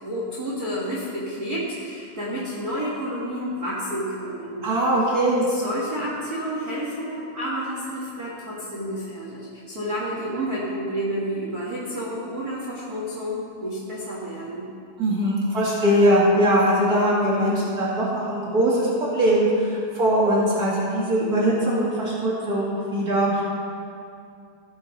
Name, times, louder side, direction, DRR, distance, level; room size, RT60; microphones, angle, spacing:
voice 1, 0.0-4.7 5.5-14.7, equal, 80° right, -6 dB, 0.8 m, -30 dB
voice 2, 4.6-5.4 15.0-23.4, right 1 dB, 40° right, -6 dB, 1.4 m, -21 dB
16.0 x 7.5 x 4.1 m, 2.3 s
omnidirectional pair, 4.7 m